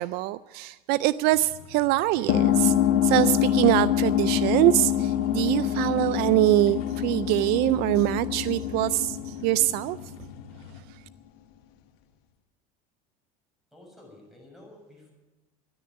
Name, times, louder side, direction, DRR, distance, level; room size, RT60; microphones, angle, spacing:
voice 1, 0.0-2.7 3.0-10.0, right 17 dB, 65° right, 18 dB, 0.4 m, -24 dB
sound 1, 1.3-10.8, left 5 dB, 85° left, 2.1 m, -47 dB
sound 2, 2.3-10.4, left 11 dB, 70° left, 1.4 m, -25 dB
voice 2, 13.7-15.1, left 1 dB, ahead, 0 dB, 7.0 m, -51 dB
13.0 x 11.0 x 9.8 m, 1.1 s
supercardioid pair, 110°, 18 cm